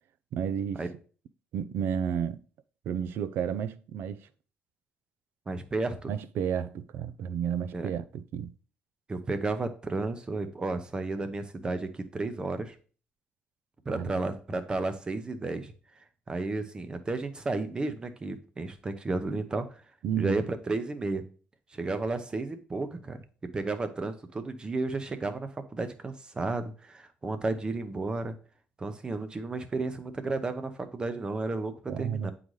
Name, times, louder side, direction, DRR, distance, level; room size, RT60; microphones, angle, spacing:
voice 1, 0.3-0.8 1.5-2.4 2.9-4.3 6.1-8.5 14.0-14.2 20.0-20.4 31.9-32.3, right 8 dB, 75° right, 0.4 m, -31 dB
voice 2, 5.5-6.1 7.7-7.9 9.1-12.7 13.9-15.7 16.3-19.7 20.2-21.2 21.7-23.2 23.4-28.4 28.8-32.3, right 3 dB, 25° right, 0.7 m, -32 dB
8.6 x 3.9 x 3.2 m
cardioid pair, 140°, 4 cm